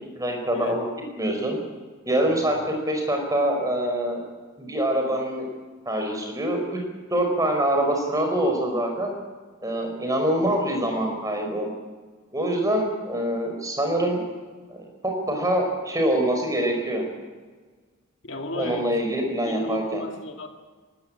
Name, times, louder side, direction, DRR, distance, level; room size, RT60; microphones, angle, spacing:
voice 1, 0.2-0.8 1.2-1.6 2.0-4.2 4.6-5.4 5.9-6.8 7.1-9.2 9.6-11.7 12.3-14.2 14.7-17.0 18.5-20.0, right 1 dB, 15° right, 2 dB, 4.6 m, -25 dB
voice 2, 2.3-2.7 18.2-18.9 19.4-20.5, left 1 dB, 55° left, 4 dB, 2.0 m, -34 dB
20.0 x 17.0 x 8.6 m, 1.5 s
head